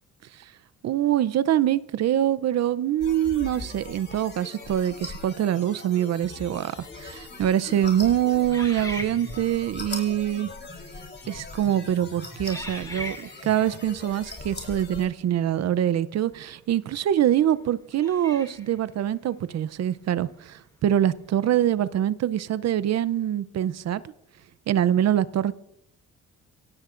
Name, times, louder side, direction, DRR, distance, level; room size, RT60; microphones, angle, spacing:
voice 1, 0.8-10.5 11.3-24.1 24.7-25.5, right 11 dB, 60° right, 17 dB, 0.6 m, -24 dB
sound 1, 3.0-15.1, left 3 dB, 35° left, 3.8 m, -40 dB
sound 2, 8.5-9.7 10.5-10.7 11.4-11.7 12.5-13.6 16.3-16.4 17.9-18.8, left 1 dB, 10° left, 2.4 m, -39 dB
25.5 x 16.5 x 2.5 m, 0.80 s
cardioid pair, 90°, 30 cm